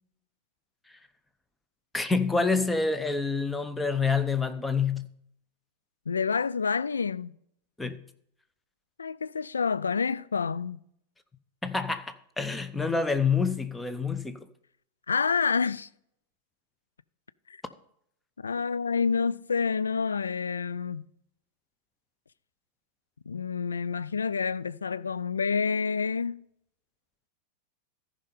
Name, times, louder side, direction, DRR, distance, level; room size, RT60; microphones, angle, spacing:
voice 1, 1.9-5.1 7.8-8.0 11.6-14.4, left 4 dB, 10° left, 0.8 m, -27 dB
voice 2, 6.1-7.3 9.0-10.8 15.1-15.9 17.5-17.6 18.4-21.1 23.3-26.4, left 5 dB, 75° left, 0.3 m, -28 dB
14.0 x 5.4 x 5.4 m
figure-of-eight pair, 90°, 0 cm